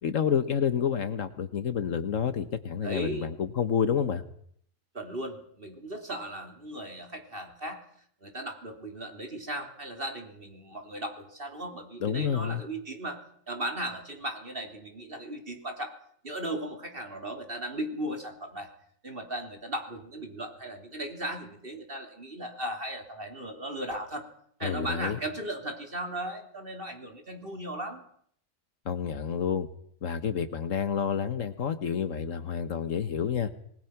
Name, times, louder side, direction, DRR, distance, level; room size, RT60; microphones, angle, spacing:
voice 1, 0.0-4.2 12.0-12.6 24.6-25.2 28.8-29.7 30.0-33.5, left 7 dB, 75° left, 11 dB, 1.5 m, -29 dB
voice 2, 2.8-3.3 4.9-7.8 8.2-13.2 13.5-15.9 16.2-18.7 19.0-24.3 24.6-28.0, right 1 dB, 45° right, 4 dB, 3.4 m, -37 dB
27.0 x 20.0 x 5.9 m, 0.64 s
omnidirectional pair, 1.4 m